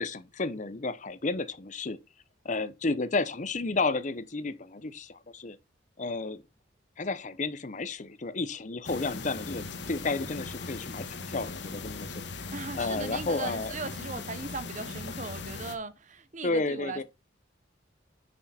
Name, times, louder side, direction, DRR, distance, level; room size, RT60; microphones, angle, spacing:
voice 1, 0.0-2.0 2.4-5.6 6.0-6.4 7.0-12.5 12.8-13.7 16.4-17.0, left 3 dB, 40° left, 0.7 m, -32 dB
sound 1, 8.8-15.7, left 3 dB, 65° left, 1.4 m, -39 dB
voice 2, 12.5-17.0, right 3 dB, 40° right, 1.0 m, -38 dB
9.9 x 6.4 x 4.2 m
head